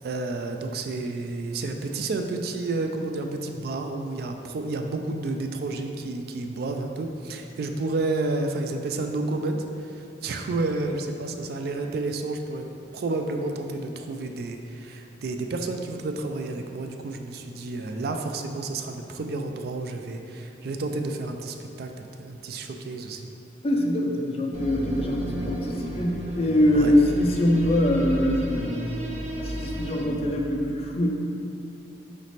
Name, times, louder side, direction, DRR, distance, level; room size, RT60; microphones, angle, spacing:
voice 1, 0.0-12.7 12.9-23.3 26.7-26.9 27.7-27.8, right 2 dB, 60° right, 4 dB, 0.3 m, -30 dB
voice 2, 23.6-29.0 29.4-31.1, left 1 dB, 35° left, 1 dB, 0.4 m, -23 dB
sound 1, 24.5-30.0, equal, 40° right, 0.8 m, -33 dB
4.1 x 3.2 x 4.1 m, 2.6 s
head